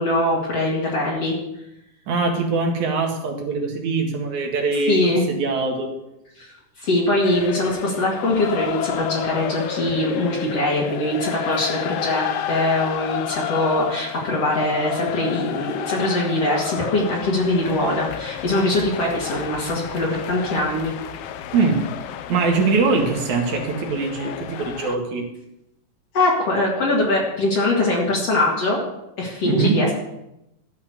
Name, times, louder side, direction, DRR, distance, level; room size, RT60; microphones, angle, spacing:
voice 1, 0.0-1.3 4.9-5.2 6.4-20.9 26.1-28.8 29.2-29.9, left 1 dB, 50° left, -4 dB, 3.0 m, -22 dB
voice 2, 2.1-5.0 5.3-5.9 21.5-21.8 22.3-25.2 29.4-29.8, right 4 dB, 65° right, 2 dB, 3.2 m, -22 dB
sound 1, 7.2-25.0, left 10 dB, 85° left, 1.3 m, -31 dB
13.0 x 5.8 x 8.0 m, 0.88 s
omnidirectional pair, 3.6 m